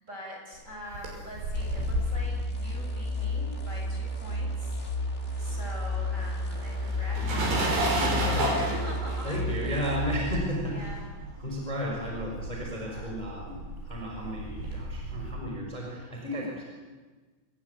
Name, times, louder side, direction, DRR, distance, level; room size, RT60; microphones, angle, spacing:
voice 1, 0.0-4.8 5.4-7.8 8.1-9.9 10.7-11.1 12.7-13.1, equal, 15° right, -1 dB, 7.3 m, -43 dB
sound 1, 0.7-4.3 4.6-15.3, right 1 dB, 75° right, 8.0 m, -33 dB
sound 2, 1.5-10.5, left 2 dB, 45° left, 0.9 m, -32 dB
voice 2, 8.2-8.5 9.2-10.9 11.4-16.6, equal, 10° left, -2 dB, 5.3 m, -34 dB
27.0 x 21.5 x 8.6 m, 1.4 s
omnidirectional pair, 5.0 m